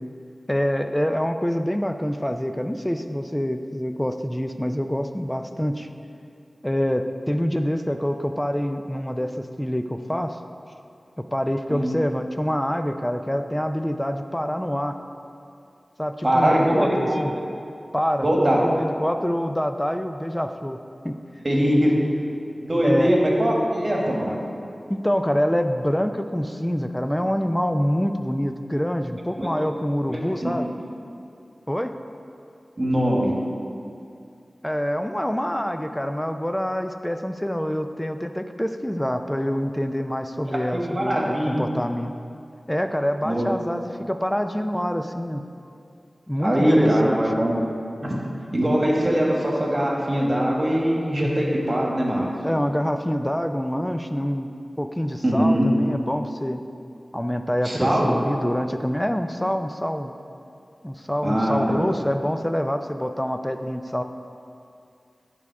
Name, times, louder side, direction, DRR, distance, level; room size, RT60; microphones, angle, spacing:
voice 1, 0.5-5.9 6.6-10.4 11.2-15.0 16.0-17.3 17.9-20.8 21.0-21.1 22.8-23.1 24.9-30.7 31.7-31.9 34.6-42.1 42.7-45.4 46.3-47.2 52.4-54.5 54.8-56.6 57.1-60.1 60.8-64.0, equal, 10° left, 7 dB, 0.4 m, -26 dB
voice 2, 16.2-17.2 18.2-18.6 21.4-21.9 22.6-24.3 29.4-29.5 30.1-30.6 32.8-33.3 40.9-41.6 43.2-43.4 46.4-47.5 48.0-48.1 48.5-52.3 55.2-55.7 57.6-58.1 61.2-61.9, equal, 35° right, -3 dB, 1.5 m, -21 dB
10.5 x 3.6 x 4.6 m, 2.5 s
wide cardioid pair, 65°, 0 cm